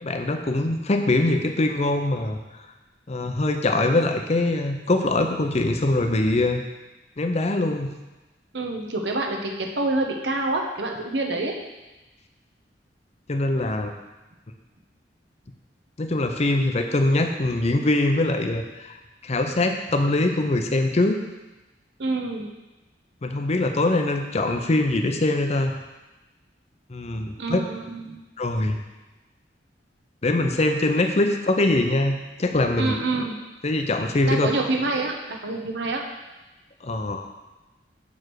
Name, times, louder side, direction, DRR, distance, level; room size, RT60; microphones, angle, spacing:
voice 1, 0.0-2.4 3.1-6.6 7.2-7.9 13.3-13.9 16.0-19.0 19.2-21.2 23.2-25.7 26.9-27.6 28.4-28.8 30.2-33.0 33.6-34.5 36.8-37.3, left 2 dB, 35° left, 5 dB, 0.6 m, -23 dB
voice 2, 8.5-11.5 22.0-22.5 27.4-28.2 32.8-33.3 34.3-36.0, right 2 dB, 70° right, 2 dB, 0.9 m, -27 dB
6.2 x 4.9 x 4.6 m, 1.1 s
head